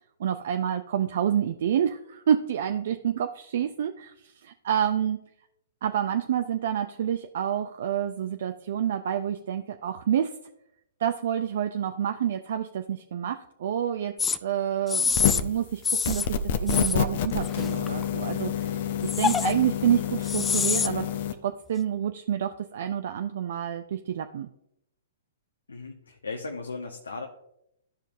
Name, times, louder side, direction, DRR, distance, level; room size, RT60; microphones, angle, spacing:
voice 1, 0.2-5.2 5.8-10.3 11.0-14.1 14.4-21.1 21.4-24.5, right 9 dB, 60° right, 8 dB, 0.4 m, -28 dB
sound 1, 14.2-14.4 14.9-15.4 15.8-16.3 16.7-16.9 17.4-18.0 19.1-19.5 20.2-20.9, left 5 dB, 15° left, 0.3 m, -26 dB
sound 2, 15.1-15.6 16.0-21.3, left 8 dB, 55° left, 0.7 m, -28 dB
voice 2, 25.7-27.3, left 3 dB, 85° left, 2 dB, 0.8 m, -36 dB
12.5 x 5.2 x 2.5 m, 0.79 s
figure-of-eight pair, 120°, 0 cm